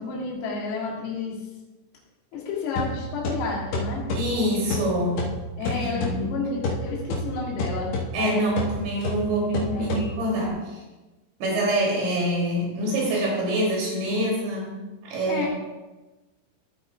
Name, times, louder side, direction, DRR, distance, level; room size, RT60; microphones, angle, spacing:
voice 1, 0.0-1.4 2.3-4.1 5.6-8.4 9.7-10.0 15.3-15.5, left 4 dB, 85° left, -4 dB, 4.9 m, -31 dB
sound 1, 2.8-10.5, left 1 dB, 60° left, 3.8 m, -31 dB
voice 2, 4.1-5.2 5.6-6.4 8.1-10.8 11.4-15.5, right 1 dB, 60° right, -4 dB, 5.4 m, -26 dB
15.0 x 8.6 x 2.5 m, 1.2 s
omnidirectional pair, 6.0 m